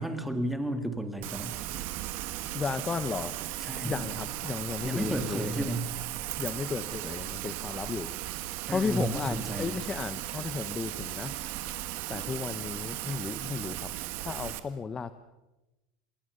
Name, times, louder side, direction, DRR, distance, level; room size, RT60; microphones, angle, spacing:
voice 1, 0.0-1.6 3.6-4.0 4.8-5.9 8.7-9.8, right 1 dB, ahead, 7 dB, 2.0 m, -33 dB
Rain, 1.2-14.6, right 15 dB, 50° right, 1.7 m, -37 dB
voice 2, 2.5-3.4 3.8-5.7 6.3-8.1 8.7-11.3 12.1-13.9 14.2-15.1, left 5 dB, 15° left, 13 dB, 0.7 m, -34 dB
27.5 x 20.5 x 6.7 m, 1.0 s
supercardioid pair, 155°, 5 cm